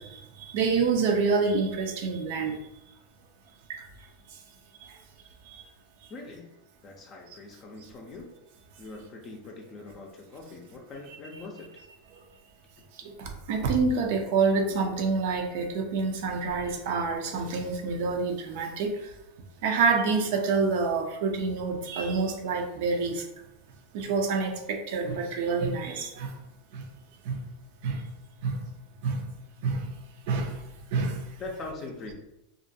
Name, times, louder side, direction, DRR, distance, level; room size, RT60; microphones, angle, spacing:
voice 1, 0.5-2.5 3.7-3.8 13.5-18.9 19.6-23.2 23.9-26.3 27.3-27.4 27.8-27.9 28.4-28.6 29.0-29.2 29.6-29.8 30.3-30.5 30.9-31.2, right 4 dB, 65° right, 4 dB, 0.5 m, -27 dB
voice 2, 6.1-6.5 6.8-8.3 8.8-11.8 31.4-32.1, left 3 dB, 40° left, 1 dB, 0.4 m, -42 dB
2.4 x 2.1 x 2.6 m, 0.86 s
hypercardioid pair, 105°, 0 cm